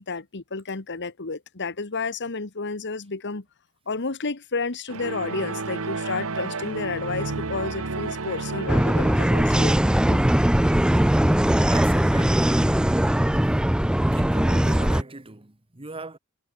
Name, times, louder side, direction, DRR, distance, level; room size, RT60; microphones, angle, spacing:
voice 1, 0.0-3.4 3.9-9.8 10.1-10.3, left 4 dB, 55° left, 1.5 m, -31 dB
sound 1, 4.9-9.5, right 3 dB, 70° right, 1.3 m, -31 dB
sound 2, 8.7-15.0, equal, 5° right, 0.4 m, -20 dB
voice 2, 11.6-12.8 13.3-13.7 14.1-16.2, right 3 dB, 25° right, 1.5 m, -39 dB
head